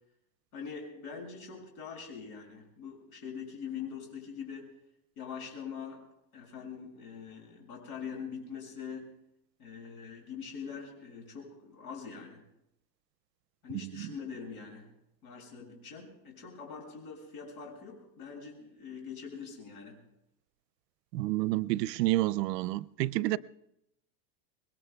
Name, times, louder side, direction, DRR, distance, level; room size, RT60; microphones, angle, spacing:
voice 1, 0.5-4.7 5.2-6.1 6.3-9.1 9.6-12.4 13.6-14.9 15.2-20.0, left 6 dB, 65° left, 6.9 m, -43 dB
voice 2, 21.1-23.4, right 17 dB, 85° right, 0.6 m, -29 dB
26.0 x 21.5 x 2.3 m
supercardioid pair, 160°, 48 cm